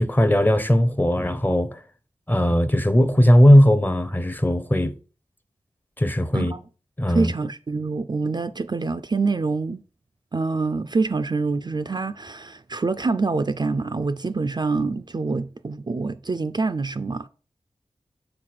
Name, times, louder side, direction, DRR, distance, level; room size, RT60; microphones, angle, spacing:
voice 1, 0.0-1.8 2.3-4.9 6.0-6.5 7.0-7.3, equal, 15° left, 0.6 m, -18 dB
voice 2, 7.1-9.8 10.3-17.3, right 3 dB, 35° right, 0.4 m, -26 dB
5.9 x 4.2 x 4.7 m
wide cardioid pair, 55°, 12 cm